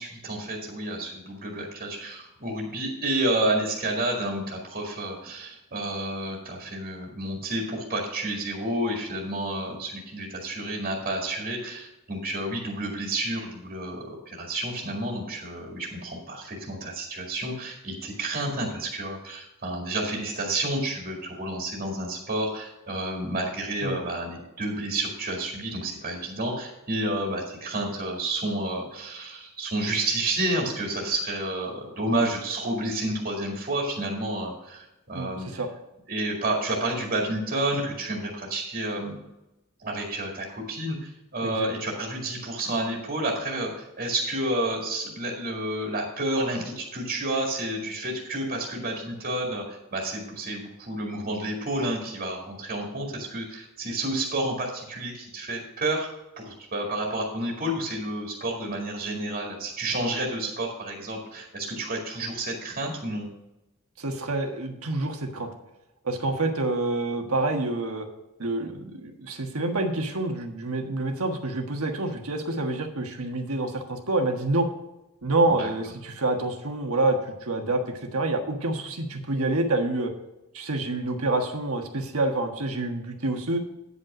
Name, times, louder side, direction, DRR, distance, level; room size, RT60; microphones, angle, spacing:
voice 1, 0.0-35.6 36.1-39.2 39.8-56.1 56.4-63.3 75.5-75.7, right 1 dB, 40° right, -1 dB, 2.0 m, -30 dB
voice 2, 35.1-35.7 41.4-41.7 64.0-65.5 66.0-68.1 68.4-74.7 75.2-80.1 80.5-83.6, right 2 dB, 75° right, 4 dB, 1.5 m, -27 dB
9.7 x 5.4 x 6.1 m, 0.94 s
head